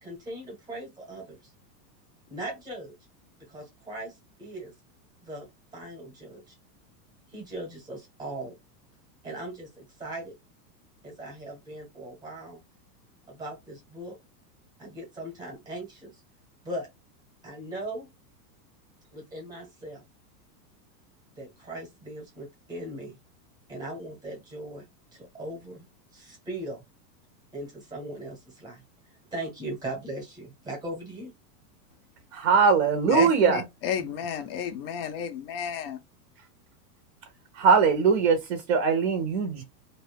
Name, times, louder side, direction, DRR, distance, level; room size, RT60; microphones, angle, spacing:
voice 1, 0.0-1.4 2.3-2.9 3.5-4.7 5.2-5.5 5.7-6.5 7.3-8.5 9.2-10.3 11.0-12.6 13.3-14.2 14.8-16.1 16.6-16.9 17.4-18.1 19.1-20.0 21.4-23.2 23.7-24.9 25.1-25.9 26.1-26.8 27.5-28.8 29.3-31.3, right 1 dB, 10° right, 0.8 m, -39 dB
voice 2, 32.3-33.6 37.5-39.6, right 5 dB, 40° right, 0.6 m, -21 dB
voice 3, 33.1-36.0, left 8 dB, 40° left, 0.4 m, -32 dB
2.6 x 2.2 x 3.3 m
supercardioid pair, 170°, 49 cm